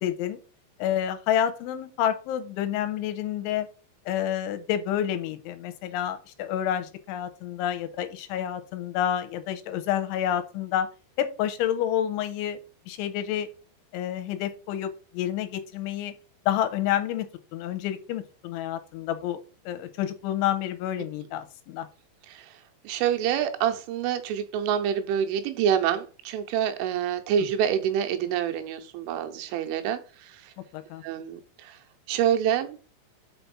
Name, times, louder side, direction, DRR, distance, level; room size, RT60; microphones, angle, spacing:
voice 1, 0.0-0.4 0.8-3.7 4.1-10.9 11.2-12.6 12.9-13.5 13.9-16.1 16.5-21.9 30.7-31.0, left 10 dB, 85° left, 11 dB, 3.0 m, -29 dB
voice 2, 22.8-30.5 31.0-31.8 32.1-32.8, right 9 dB, 80° right, 7 dB, 3.4 m, -27 dB
6.0 x 5.7 x 7.0 m, 0.36 s
omnidirectional pair, 5.7 m